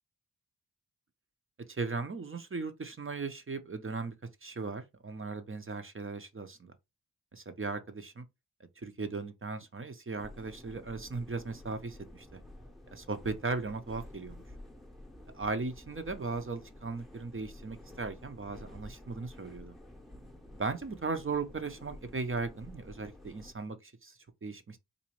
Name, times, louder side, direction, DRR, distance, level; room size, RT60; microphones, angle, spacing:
voice 1, 1.7-4.1 4.4-6.7 7.3-8.2 8.8-12.4 12.9-14.4 15.3-19.7 20.6-24.8, right 4 dB, 30° right, 0.7 m, -37 dB
sound 1, 10.2-23.5, left 1 dB, ahead, 0.8 m, -51 dB
4.0 x 2.7 x 3.0 m
cardioid pair, 45°, 39 cm